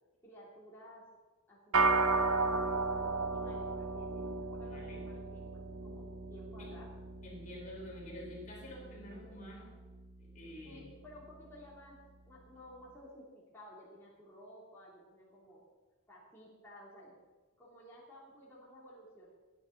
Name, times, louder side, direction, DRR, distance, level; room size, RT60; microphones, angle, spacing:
voice 1, 0.2-1.1 1.5-5.4 5.8-6.9 10.6-12.0 12.3-15.6 16.1-17.2 17.6-19.3, equal, 10° left, -8 dB, 3.4 m, -54 dB
sound 1, 1.7-11.3, right 3 dB, 80° right, 0.9 m, -35 dB
voice 2, 4.6-5.1 6.6-6.7 7.2-9.9 10.3-10.8, left 1 dB, 35° left, -2 dB, 4.1 m, -48 dB
15.5 x 9.9 x 6.1 m, 1.2 s
head